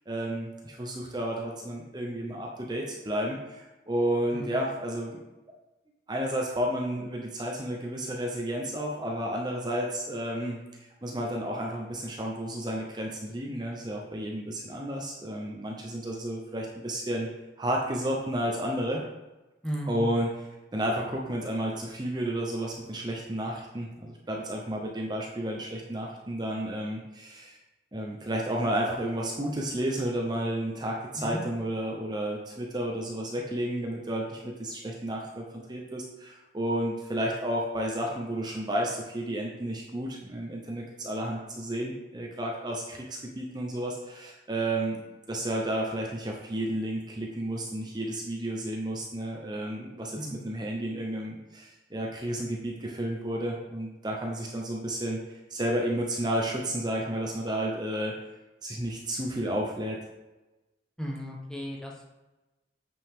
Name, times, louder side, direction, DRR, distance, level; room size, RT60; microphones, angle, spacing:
voice 1, 0.1-5.2 6.1-10.6 11.0-17.3 17.6-19.0 19.9-20.5 20.7-27.6 27.9-45.0 45.3-58.1 58.6-60.0, right 1 dB, 25° right, -1 dB, 0.8 m, -32 dB
voice 2, 4.3-4.7 19.6-20.1 31.1-31.4 50.2-50.4 61.0-62.1, equal, 5° left, -2 dB, 1.1 m, -35 dB
8.7 x 5.3 x 3.7 m, 1.1 s
head